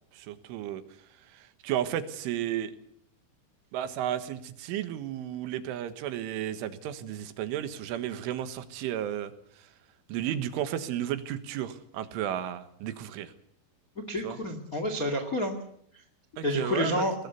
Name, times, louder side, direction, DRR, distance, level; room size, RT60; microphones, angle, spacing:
voice 1, 0.1-0.8 1.3-2.7 3.7-9.3 10.1-13.3 14.2-14.4 16.4-17.1, right 11 dB, 80° right, 12 dB, 3.7 m, -33 dB
voice 2, 13.9-15.6 16.4-17.1, left 1 dB, 55° left, 7 dB, 0.9 m, -29 dB
22.5 x 19.0 x 8.2 m, 0.68 s
omnidirectional pair, 5.8 m